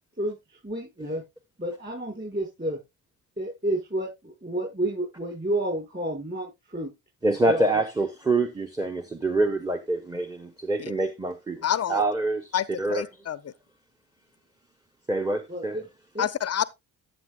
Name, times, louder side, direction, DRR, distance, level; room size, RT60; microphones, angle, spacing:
voice 1, 0.6-1.2 1.6-2.8 3.4-6.9 7.5-7.6 15.5-15.8 16.1-16.3, right 1 dB, 25° right, 5.5 m, -30 dB
voice 2, 7.2-13.0 15.1-15.8, right 2 dB, 10° right, 1.1 m, -26 dB
voice 3, 11.6-12.0 12.5-13.4 16.2-16.6, left 9 dB, 35° left, 0.6 m, -27 dB
13.0 x 7.5 x 2.3 m
hypercardioid pair, 50°, 44 cm